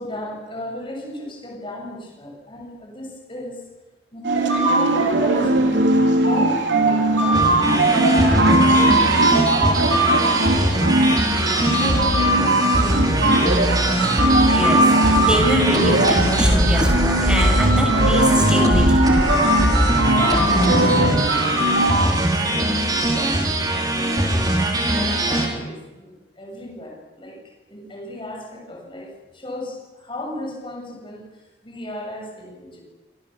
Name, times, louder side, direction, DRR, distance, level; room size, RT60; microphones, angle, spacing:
voice 1, 0.0-3.6 4.1-5.8 6.2-11.3 11.7-13.5 20.1-27.4 27.7-32.8, left 1 dB, 30° left, 0 dB, 6.9 m, -34 dB
sound 1, 4.2-22.1, right 1 dB, 80° right, 4.1 m, -19 dB
sound 2, 7.3-25.5, right 1 dB, 20° right, 4.6 m, -21 dB
voice 2, 14.5-19.1, equal, 5° right, 1 dB, 7.3 m, -24 dB
27.0 x 26.0 x 7.3 m, 1.1 s
head